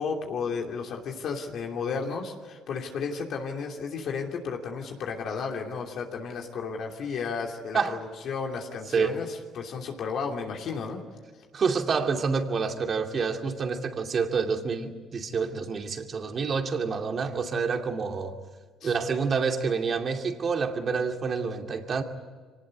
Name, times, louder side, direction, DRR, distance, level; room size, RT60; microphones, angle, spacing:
voice 1, 0.0-11.0 18.8-18.9, left 5 dB, 65° left, 1 dB, 2.9 m, -33 dB
voice 2, 11.5-18.4 18.8-22.0, right 5 dB, 45° right, 4 dB, 2.6 m, -28 dB
24.5 x 19.0 x 9.7 m, 1.5 s
supercardioid pair, 80°, 0 cm